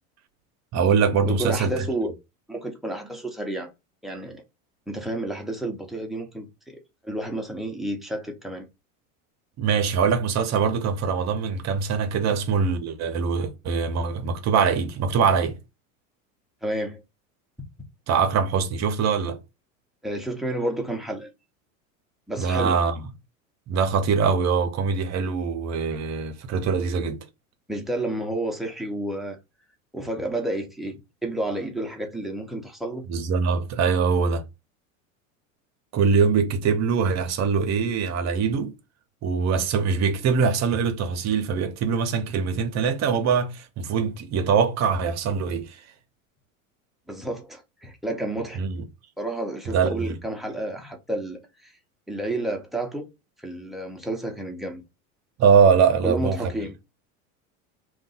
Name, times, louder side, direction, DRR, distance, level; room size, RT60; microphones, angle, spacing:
voice 1, 0.7-1.8 9.6-15.5 18.1-19.4 22.4-23.0 23.7-27.2 33.1-34.4 35.9-38.7 39.2-45.8 48.5-48.8 49.7-50.1 55.4-56.4, right 6 dB, 40° right, 0.8 m, -23 dB
voice 2, 1.2-2.1 2.5-3.7 4.0-4.4 4.9-6.8 7.0-8.7 16.6-17.0 20.0-21.3 22.3-22.8 27.7-29.4 29.9-33.1 47.1-48.6 49.2-51.7 52.1-53.1 53.4-54.8 56.0-56.7, right 1 dB, ahead, 0.8 m, -30 dB
2.5 x 2.4 x 4.0 m
hypercardioid pair, 95°, 40 cm